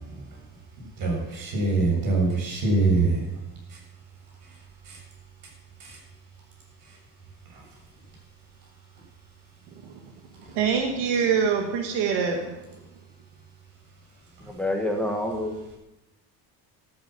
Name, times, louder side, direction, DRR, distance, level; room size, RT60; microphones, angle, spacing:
voice 1, 0.8-3.2 4.9-5.0 5.8-6.0, right 3 dB, 55° right, -1 dB, 7.4 m, -24 dB
voice 2, 10.5-12.8, right 6 dB, 85° right, 4 dB, 1.9 m, -25 dB
voice 3, 14.4-15.7, left 1 dB, 5° left, 2 dB, 1.4 m, -28 dB
13.5 x 9.6 x 7.7 m, 0.94 s
cardioid pair, 155°, 40 cm